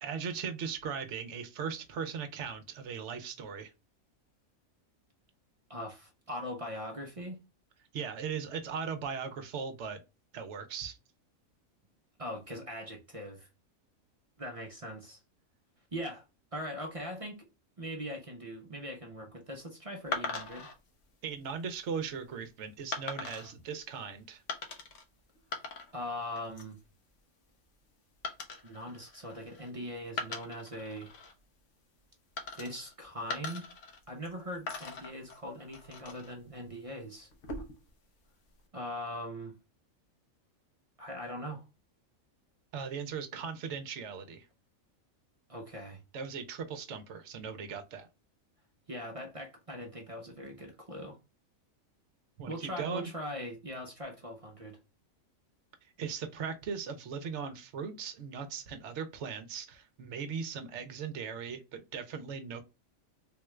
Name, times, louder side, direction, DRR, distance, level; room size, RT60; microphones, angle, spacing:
voice 1, 0.0-3.7 7.9-10.0 10.3-11.0 21.2-24.4 42.7-44.5 46.1-48.1 52.4-53.1 55.8-62.6, right 6 dB, 60° right, 0.9 m, -38 dB
voice 2, 5.7-7.4 12.2-13.5 14.4-15.2 15.9-16.2 16.5-17.5 17.8-20.7 25.9-26.8 28.6-31.1 32.5-33.7 34.1-37.3 38.7-39.6 41.0-41.6 45.5-46.0 48.9-51.2 52.5-54.8, equal, 35° right, 0.5 m, -41 dB
sound 1, 20.1-20.7 21.4-21.8 22.9-23.5 24.5-25.0 25.3-26.1 26.4-26.8 28.2-29.7 30.1-31.3 32.4-32.9 33.3-34.3 34.7-36.3 37.3-37.9, left 3 dB, 65° left, 1.1 m, -40 dB
3.7 x 2.3 x 3.1 m
omnidirectional pair, 1.4 m